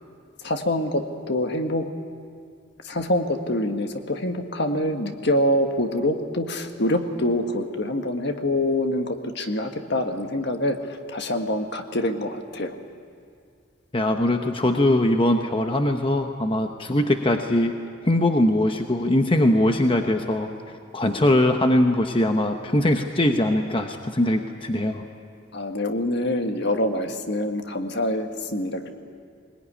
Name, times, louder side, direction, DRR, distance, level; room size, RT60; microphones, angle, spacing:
voice 1, 0.4-1.9 2.8-10.8 11.1-12.7 25.5-28.9, left 1 dB, 60° left, 5 dB, 1.6 m, -25 dB
voice 2, 13.9-17.7 18.1-20.5 20.9-25.0, left 1 dB, 25° left, 5 dB, 0.9 m, -21 dB
20.5 x 20.5 x 9.9 m, 2.3 s
head